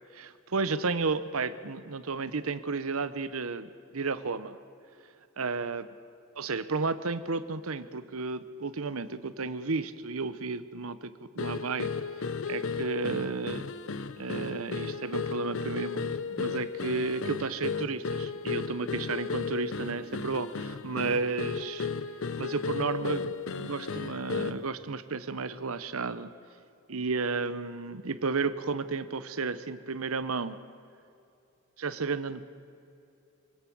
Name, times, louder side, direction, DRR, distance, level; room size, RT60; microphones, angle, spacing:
voice 1, 0.1-4.6 5.4-5.9 6.4-11.9 12.5-13.7 14.2-21.9 22.4-26.3 26.9-30.6 31.8-32.4, right 4 dB, 75° right, 13 dB, 0.9 m, -32 dB
sound 1, 11.4-24.7, left 5 dB, 65° left, 0.7 m, -34 dB
25.0 x 17.0 x 6.2 m, 2.7 s
head